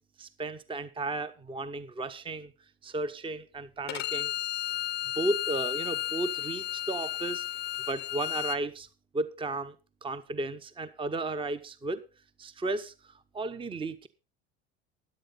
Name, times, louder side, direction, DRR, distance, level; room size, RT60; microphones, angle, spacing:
voice 1, 0.2-2.5 2.8-4.3 5.1-7.4 7.9-8.9 9.1-9.8 10.0-12.0 12.4-14.1, right 2 dB, 15° right, 0.9 m, -34 dB
Bowed string instrument, 3.9-8.6, left 14 dB, 35° left, 0.5 m, -33 dB
13.0 x 10.5 x 4.1 m
hypercardioid pair, 85°, 31 cm